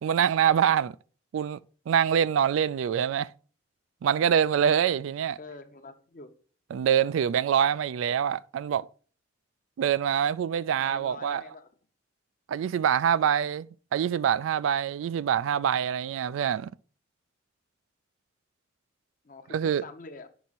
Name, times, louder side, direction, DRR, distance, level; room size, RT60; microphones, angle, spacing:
voice 1, 0.0-1.0 1.3-1.6 1.9-3.3 4.0-5.4 6.7-8.9 9.8-11.4 12.5-16.7 19.5-19.8, right 8 dB, 85° right, 0.3 m, -25 dB
voice 2, 5.4-6.3 10.8-11.7 19.2-20.3, left 3 dB, 45° left, 0.8 m, -45 dB
6.1 x 5.3 x 4.1 m
head